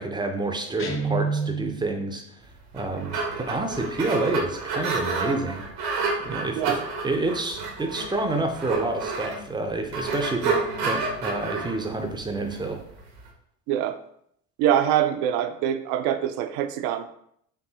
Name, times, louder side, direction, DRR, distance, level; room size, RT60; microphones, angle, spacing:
voice 1, 0.0-2.2 2.7-5.6 6.2-6.7 7.0-12.8, right 2 dB, 10° right, 4 dB, 0.4 m, -28 dB
Guitar, 0.8-2.0, right 4 dB, 25° left, 0.7 m, -28 dB
sound 1, 2.6-13.3, right 4 dB, 80° right, 1.0 m, -30 dB
voice 2, 13.7-14.0 14.6-17.1, right 10 dB, 60° right, 10 dB, 0.5 m, -24 dB
4.5 x 2.6 x 2.7 m, 0.70 s
hypercardioid pair, 65°, 48 cm